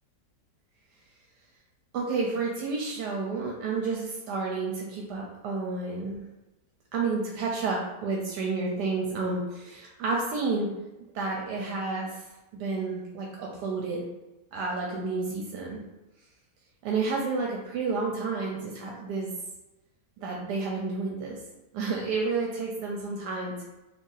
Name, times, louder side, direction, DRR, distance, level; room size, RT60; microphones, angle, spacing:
voice 1, 1.9-6.2 6.9-10.7 11.1-12.2 12.5-14.1 14.5-15.8 16.8-19.3 20.2-21.4 21.7-23.6, right 4 dB, 80° right, -1 dB, 1.1 m, -30 dB
2.8 x 2.6 x 3.8 m, 1.0 s
omnidirectional pair, 1.8 m